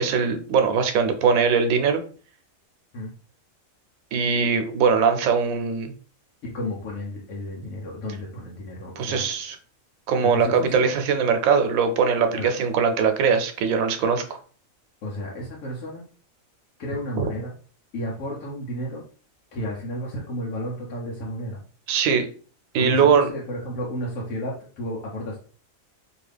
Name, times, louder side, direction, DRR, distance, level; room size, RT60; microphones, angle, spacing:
voice 1, 0.0-2.0 4.1-5.9 9.0-9.6 10.1-14.4 17.2-17.3 21.9-22.3 22.7-23.3, right 6 dB, 90° right, 7 dB, 1.0 m, -21 dB
voice 2, 6.4-9.2 10.2-10.9 12.3-12.5 15.0-16.0 16.8-17.5 17.9-19.0 19.5-21.6 22.8-25.4, equal, 90° left, -3 dB, 1.2 m, -32 dB
2.7 x 2.4 x 3.3 m, 0.41 s
omnidirectional pair, 1.4 m